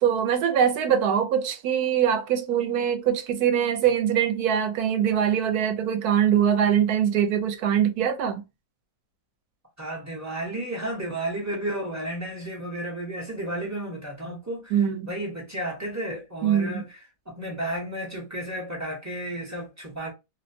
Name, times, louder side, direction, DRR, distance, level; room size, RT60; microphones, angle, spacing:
voice 1, 0.0-8.4 14.7-15.1 16.4-16.8, right 9 dB, 75° right, 1.0 m, -23 dB
voice 2, 9.8-17.0 17.3-20.1, right 1 dB, 20° right, 0.5 m, -33 dB
2.7 x 2.1 x 2.6 m
omnidirectional pair, 1.7 m